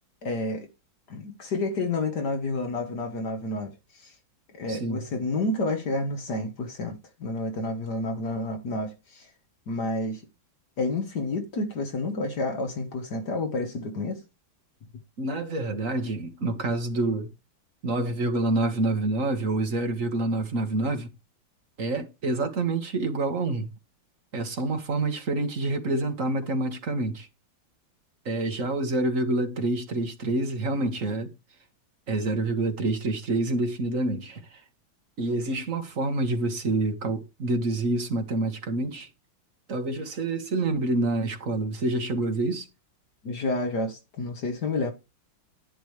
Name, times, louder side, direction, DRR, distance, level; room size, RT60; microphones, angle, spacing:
voice 1, 0.2-0.7 1.1-4.1 4.5-9.3 9.7-10.2 10.8-14.2 43.2-44.9, left 2 dB, 60° left, 1.8 m, -30 dB
voice 2, 4.7-5.0 15.2-17.3 17.8-21.1 21.8-23.7 24.3-27.3 28.3-31.3 32.1-34.6 35.2-39.1 39.7-42.7, right 2 dB, 45° right, 1.8 m, -27 dB
11.0 x 9.9 x 3.3 m
omnidirectional pair, 2.1 m